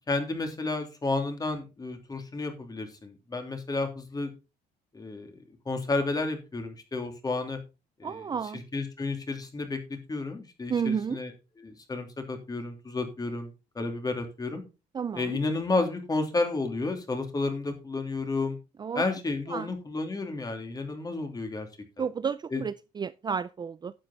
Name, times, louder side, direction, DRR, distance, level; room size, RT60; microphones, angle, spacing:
voice 1, 0.1-4.3 4.9-5.3 5.6-7.6 8.0-8.2 8.7-9.8 10.1-11.3 11.6-13.5 13.7-14.6 15.1-18.6 18.9-21.7 22.5-22.6, left 3 dB, 20° left, 2.9 m, -31 dB
voice 2, 8.0-8.6 10.7-11.2 14.9-15.4 18.8-19.0 19.5-19.7 22.0-23.9, right 6 dB, 25° right, 0.4 m, -31 dB
11.5 x 7.6 x 4.1 m
cardioid pair, 110°, 17 cm